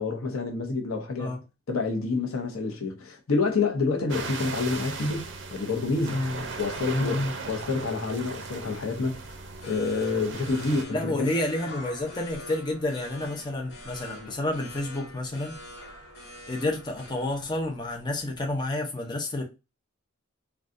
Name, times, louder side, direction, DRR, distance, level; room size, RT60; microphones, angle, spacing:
voice 1, 0.0-1.3 1.7-6.3 6.6-9.2 9.6-11.3, left 3 dB, 90° left, 0.8 m, -28 dB
sound 1, 4.1-10.8, right 4 dB, 55° right, 0.5 m, -37 dB
voice 2, 6.1-6.4 6.9-7.3 10.9-15.6 16.5-19.4, left 1 dB, 20° left, 0.6 m, -30 dB
sound 2, 8.9-18.5, left 1 dB, 50° left, 1.3 m, -45 dB
3.7 x 2.3 x 2.5 m
head